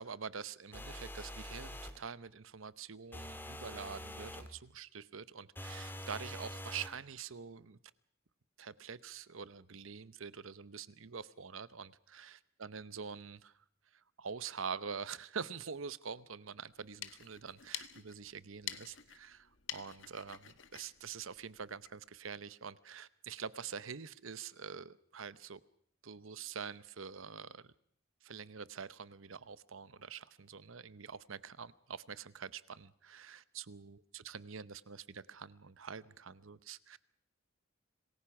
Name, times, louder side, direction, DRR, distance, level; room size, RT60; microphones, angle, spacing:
voice 1, 0.0-7.8 8.6-13.6 13.9-25.6 26.0-27.7 28.2-37.0, right 6 dB, 70° right, 17 dB, 0.9 m, -46 dB
sound 1, 0.7-2.0 3.1-4.5 5.6-7.0, left 1 dB, 10° left, 1.7 m, -45 dB
sound 2, 16.7-22.0, left 10 dB, 60° left, 1.5 m, -48 dB
26.5 x 20.5 x 6.0 m, 0.63 s
head